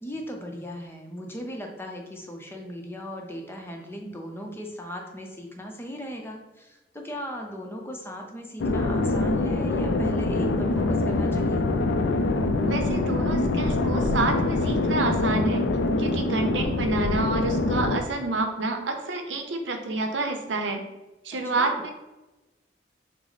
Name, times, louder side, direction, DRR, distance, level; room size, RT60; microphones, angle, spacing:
voice 1, 0.0-11.6 21.3-21.8, equal, 15° left, 2 dB, 0.6 m, -38 dB
sound 1, 8.6-18.0, left 2 dB, 75° left, 0.4 m, -24 dB
voice 2, 12.6-15.7 16.0-20.8 21.2-21.9, right 3 dB, 85° right, 5 dB, 0.7 m, -28 dB
6.0 x 2.0 x 4.0 m, 1.1 s
head